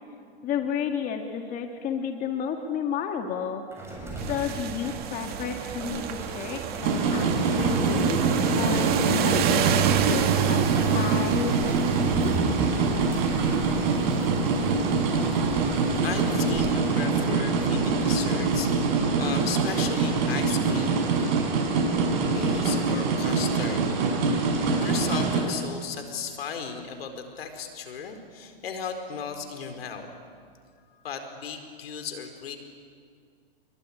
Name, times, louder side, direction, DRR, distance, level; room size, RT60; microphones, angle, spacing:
voice 1, 0.4-3.8 4.3-8.2 8.6-10.6 10.9-12.3, left 7 dB, 25° left, 5 dB, 2.0 m, -32 dB
sound 1, 3.7-17.4, right 4 dB, 10° right, 7.3 m, -40 dB
sound 2, 4.2-16.7, right 9 dB, 30° right, 2.1 m, -30 dB
sound 3, 6.8-25.4, right 4 dB, 45° right, 7.0 m, -24 dB
voice 2, 15.3-15.6 16.0-21.2 22.3-23.8 24.8-30.1 31.0-32.6, left 6 dB, 75° left, 7 dB, 4.5 m, -36 dB
25.5 x 23.0 x 9.9 m, 2.1 s
hypercardioid pair, 130°, 30 cm